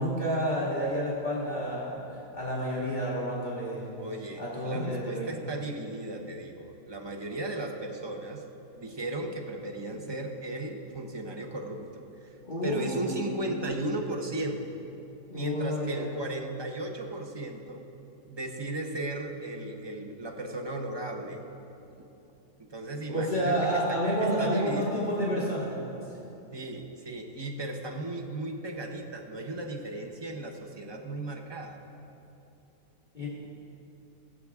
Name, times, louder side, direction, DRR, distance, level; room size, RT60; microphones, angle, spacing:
voice 1, 0.0-2.0 2.3-3.9 4.4-5.3 12.4-13.5 15.3-16.1 23.1-26.0 33.1-33.3, equal, 30° left, -7 dB, 1.9 m, -30 dB
voice 2, 4.0-8.4 8.7-12.4 12.6-14.6 15.3-17.8 18.3-21.4 22.6-24.9 26.5-31.8, right 1 dB, 25° right, 2 dB, 0.6 m, -36 dB
20.0 x 7.4 x 3.6 m, 2.9 s
omnidirectional pair, 1.7 m